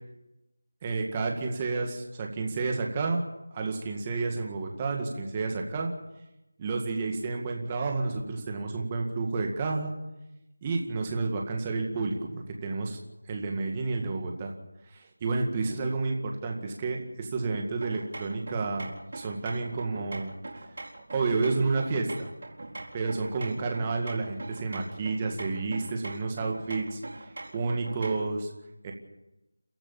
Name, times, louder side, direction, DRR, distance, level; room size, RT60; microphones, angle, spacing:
voice 1, 0.8-3.2 3.5-5.9 6.6-10.0 10.6-13.0 13.3-14.5 14.9-20.3 21.1-22.3 22.9-27.0 27.5-28.5 28.8-28.9, right 3 dB, 15° right, 2 dB, 2.0 m, -30 dB
sound 1, 17.8-28.3, right 2 dB, 50° right, 4.3 m, -43 dB
29.5 x 13.5 x 7.2 m, 0.96 s
figure-of-eight pair, 175°, 0 cm